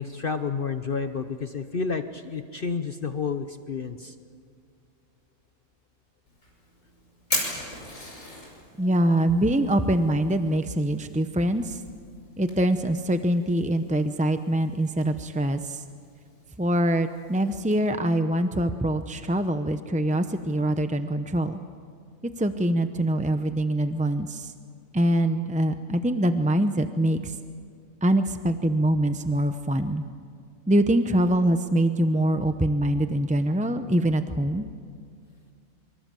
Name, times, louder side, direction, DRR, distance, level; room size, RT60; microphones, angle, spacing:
voice 1, 0.0-4.1, left 5 dB, 45° left, 8 dB, 1.0 m, -30 dB
Fire, 6.3-17.8, left 1 dB, 60° left, 6.2 m, -40 dB
voice 2, 8.8-11.8 12.4-15.8 16.6-21.6 22.4-24.5 24.9-27.3 28.0-30.0 30.7-34.6, right 1 dB, 10° right, 8 dB, 0.5 m, -24 dB
26.5 x 25.0 x 7.6 m, 2.1 s
omnidirectional pair, 1.5 m